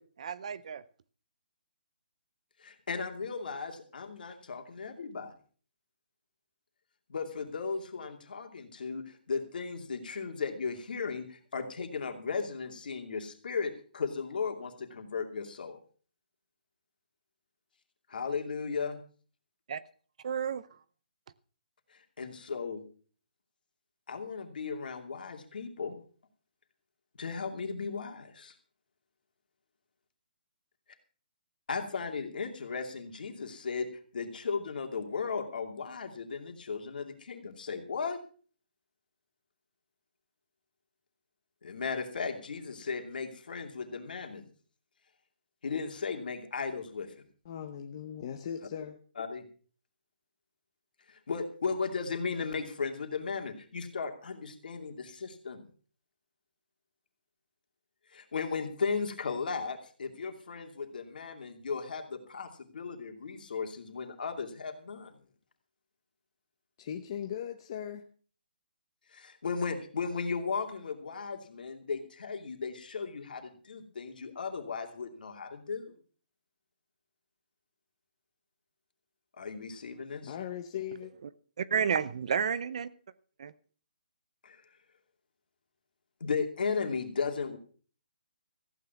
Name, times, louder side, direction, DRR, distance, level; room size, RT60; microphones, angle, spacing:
voice 1, 0.2-0.8 19.7-19.8 20.2-20.6 81.6-82.9 83.4-83.5, right 7 dB, 40° right, 0.6 m, -31 dB
voice 2, 2.6-5.3 7.1-15.8 18.1-19.0 21.9-22.8 24.1-26.0 27.2-28.5 31.7-33.9 34.1-38.2 41.6-44.4 45.6-47.1 49.2-49.4 51.1-55.6 58.1-65.1 69.1-75.9 79.4-80.3 84.4-84.6 86.2-87.6, left 5 dB, 60° left, 2.6 m, -36 dB
voice 3, 47.4-49.0 66.8-68.1 80.2-81.1, left 9 dB, 30° left, 0.9 m, -39 dB
15.0 x 9.4 x 5.9 m
hypercardioid pair, 170°, 5 cm